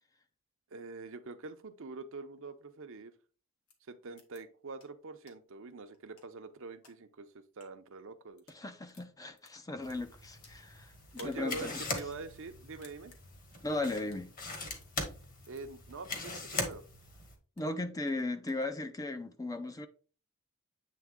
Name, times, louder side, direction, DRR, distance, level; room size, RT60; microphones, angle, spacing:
voice 1, 0.7-3.1 3.9-7.3 7.6-8.4 11.2-13.1 15.5-16.8, right 3 dB, 65° right, 0.7 m, -45 dB
sound 1, 3.7-3.8 4.2-4.4 4.8-4.9 5.3-5.4 5.9-6.9 7.5-7.7 8.2-8.6 8.9-10.6 11.1-11.4 11.8-12.2 12.5-12.6 12.8-13.2 14.0-14.3 14.8-14.9 15.4-15.6 16.1-16.3 16.7-16.8 17.2-17.7 18.1-18.6, left 4 dB, 75° left, 1.5 m, -58 dB
voice 2, 8.5-10.9 11.2-11.8 13.6-14.3 17.6-19.9, left 2 dB, 15° left, 0.5 m, -36 dB
sound 2, 9.8-17.3, left 3 dB, 40° left, 1.5 m, -41 dB
8.4 x 3.4 x 3.6 m
head